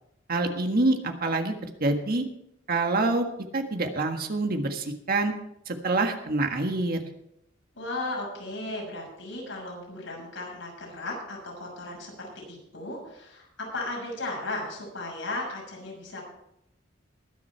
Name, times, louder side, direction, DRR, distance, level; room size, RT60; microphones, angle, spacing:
voice 1, 0.3-2.3 2.7-3.2 3.5-5.3 5.7-7.0, right 2 dB, 50° right, 5 dB, 1.6 m, -26 dB
voice 2, 7.7-16.2, left 2 dB, 80° left, -2 dB, 6.5 m, -36 dB
21.0 x 7.4 x 4.6 m, 0.79 s
head